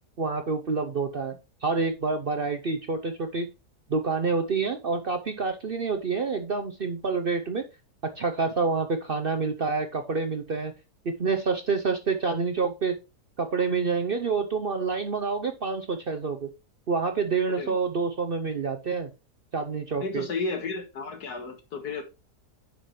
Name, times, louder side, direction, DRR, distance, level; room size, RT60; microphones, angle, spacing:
voice 1, 0.2-1.3 1.6-3.5 3.9-7.6 8.0-10.7 11.0-13.0 13.4-16.5 16.9-19.1 19.5-20.2, right 4 dB, 50° right, 0.7 m, -27 dB
voice 2, 20.0-22.0, left 4 dB, 75° left, 2.1 m, -32 dB
9.8 x 5.9 x 3.1 m
omnidirectional pair, 1.7 m